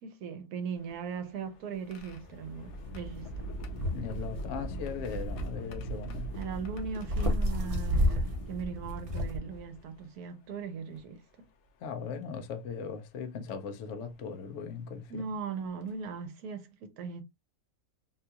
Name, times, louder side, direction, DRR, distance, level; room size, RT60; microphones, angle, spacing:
voice 1, 0.0-3.5 6.3-11.5 15.1-17.2, right 6 dB, 80° right, 1.1 m, -39 dB
sound 1, 0.8-10.1 10.9-11.0 12.5-12.7 13.5-13.7 15.3-15.4 15.8-16.0, right 1 dB, 85° left, 1.2 m, -41 dB
sound 2, 2.1-2.2 2.7-4.1 4.3-6.6 7.0-9.4, left 1 dB, 35° right, 0.5 m, -32 dB
voice 2, 3.9-6.3 11.8-15.2, left 6 dB, 60° left, 0.8 m, -39 dB
3.7 x 2.4 x 2.7 m
omnidirectional pair, 1.6 m